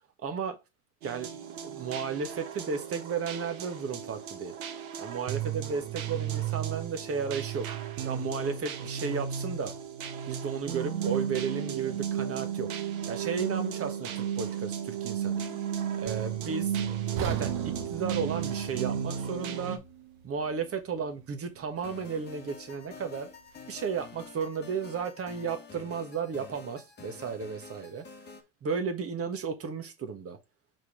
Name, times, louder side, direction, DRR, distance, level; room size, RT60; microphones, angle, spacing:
voice 1, 0.2-0.5 1.0-1.3 1.6-4.5 5.0-7.7 8.0-9.7 10.3-12.7 13.1-15.4 16.0-16.7 17.2-19.8 20.2-23.3 23.7-28.0 28.6-30.4, right 6 dB, 35° right, 1.5 m, -34 dB
sound 1, 1.0-19.8, right 9 dB, 75° right, 1.2 m, -34 dB
sound 2, 17.2-21.2 21.6-21.7 22.3-22.4, right 6 dB, 55° right, 1.3 m, -40 dB
sound 3, 21.8-28.4, left 4 dB, 25° left, 1.5 m, -48 dB
4.6 x 4.0 x 5.0 m
hypercardioid pair, 90°, 42 cm